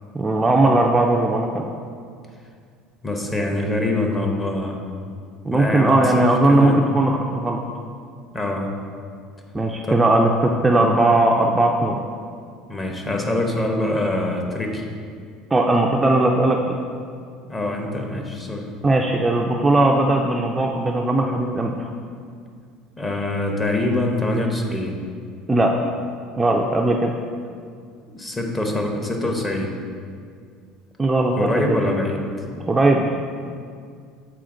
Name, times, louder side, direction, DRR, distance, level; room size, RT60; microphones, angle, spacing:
voice 1, 0.1-1.6 5.4-7.6 9.5-12.0 15.5-16.8 18.8-21.9 25.5-25.9 26.4-27.1 31.0-31.8 32.7-33.2, right 2 dB, 15° right, 0 dB, 0.4 m, -18 dB
voice 2, 3.0-4.8 5.5-6.8 8.3-8.7 9.8-9.9 12.7-14.9 17.5-18.7 23.0-25.0 28.1-29.7 31.4-32.2, left 1 dB, 20° left, 2 dB, 1.0 m, -24 dB
7.6 x 4.2 x 3.8 m, 2.2 s
supercardioid pair, 110°, 0 cm